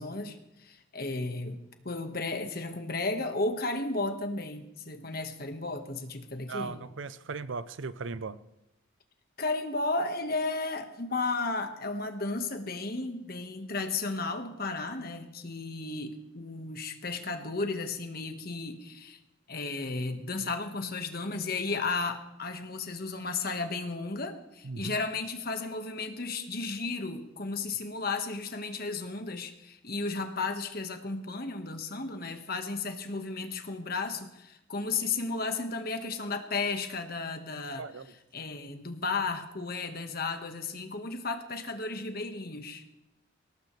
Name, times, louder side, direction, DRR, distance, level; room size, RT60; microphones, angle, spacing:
voice 1, 0.0-6.8 9.4-19.2 19.5-37.9 38.3-42.8, left 3 dB, 50° left, 6 dB, 1.5 m, -34 dB
voice 2, 6.5-8.4 24.6-24.9 37.8-38.1, right 4 dB, 70° right, 15 dB, 0.6 m, -37 dB
22.5 x 18.5 x 3.3 m, 0.89 s
head